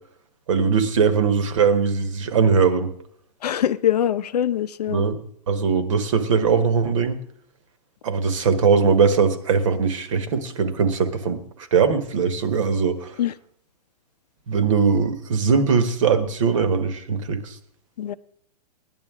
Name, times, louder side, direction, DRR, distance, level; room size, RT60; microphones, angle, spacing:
voice 1, 0.5-2.9 4.9-5.2 5.5-7.2 8.0-11.4 11.7-13.2 14.5-17.5, right 5 dB, 50° right, 1.3 m, -20 dB
voice 2, 3.4-5.0 13.2-13.3 18.0-18.1, left 10 dB, 70° left, 0.7 m, -23 dB
18.0 x 11.0 x 3.7 m
hypercardioid pair, 175°, 21 cm